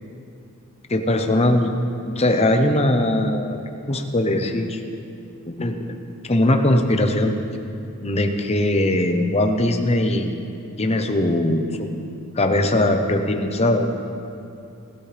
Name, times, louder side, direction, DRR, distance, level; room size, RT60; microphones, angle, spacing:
voice 1, 0.9-1.7 2.2-3.6 3.9-4.8 5.5-5.7 6.3-7.3 8.0-10.4 10.8-11.7 12.3-13.9, left 1 dB, 30° left, 5 dB, 0.8 m, -20 dB
18.0 x 12.5 x 3.5 m, 2.6 s
head